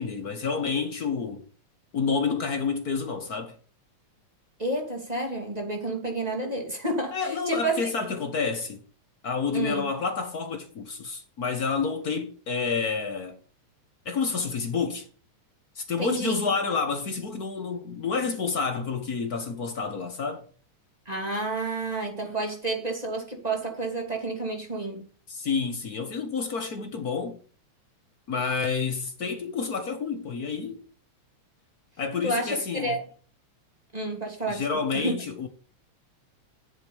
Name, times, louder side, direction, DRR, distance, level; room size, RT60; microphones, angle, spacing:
voice 1, 0.0-1.4 1.9-3.6 7.1-8.8 9.2-13.4 14.0-15.1 15.7-20.4 25.3-27.4 28.3-30.8 32.0-33.0 34.5-35.5, left 5 dB, 50° left, 1.1 m, -29 dB
voice 2, 4.6-7.9 9.5-9.9 16.0-16.6 21.1-25.0 32.2-33.0 33.9-34.7 34.9-35.1, right 2 dB, 15° right, 2.4 m, -30 dB
9.1 x 7.8 x 6.9 m
omnidirectional pair, 3.3 m